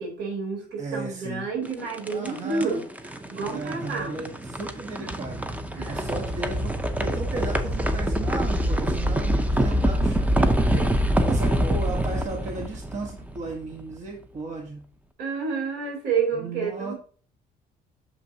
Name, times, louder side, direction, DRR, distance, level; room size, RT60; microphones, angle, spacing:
voice 1, 0.0-2.8 3.3-4.3 5.0-5.1 5.7-6.0 10.4-10.9 15.2-16.9, right 5 dB, 90° right, 0 dB, 3.3 m, -30 dB
voice 2, 0.8-1.5 2.1-2.8 3.5-5.5 5.8-10.4 11.2-14.9 16.3-16.9, right 3 dB, 45° right, 1 dB, 1.4 m, -35 dB
sound 1, 1.7-13.7, equal, 10° right, 0.7 m, -25 dB
7.1 x 5.3 x 2.8 m, 0.43 s
cardioid pair, 110°, 17 cm